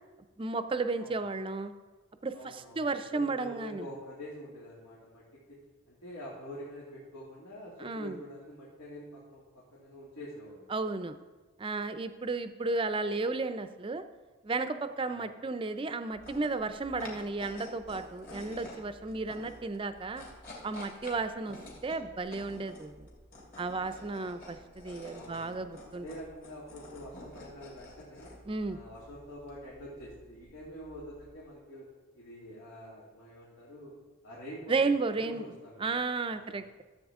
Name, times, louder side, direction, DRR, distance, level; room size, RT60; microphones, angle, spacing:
voice 1, 0.4-1.7 2.2-3.9 7.8-8.2 10.7-11.2 11.6-14.0 14.4-20.2 20.6-21.6 21.8-23.1 23.6-26.0 28.5-28.8 34.7-35.4 35.8-36.8, right 3 dB, 25° right, 10 dB, 0.4 m, -33 dB
voice 2, 1.0-1.3 2.3-5.6 5.9-10.7 15.0-15.3 24.1-24.2 25.1-28.3 28.6-31.9 32.1-33.9 34.2-36.6, equal, 90° left, -7 dB, 2.5 m, -46 dB
sound 1, 16.1-31.5, left 1 dB, 45° left, 2.7 m, -50 dB
13.0 x 7.8 x 3.6 m, 1.2 s
head